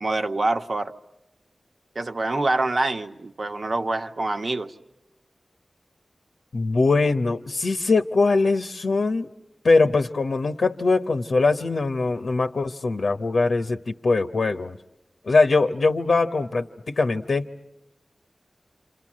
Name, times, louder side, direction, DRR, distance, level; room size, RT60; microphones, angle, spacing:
voice 1, 0.0-0.9 1.9-4.7, right 2 dB, 65° right, 6 dB, 1.2 m, -25 dB
voice 2, 6.5-9.3 9.6-14.8 15.3-17.5, left 3 dB, 80° left, 7 dB, 0.9 m, -22 dB
29.0 x 27.5 x 7.5 m, 0.97 s
cardioid pair, 50°, 0 cm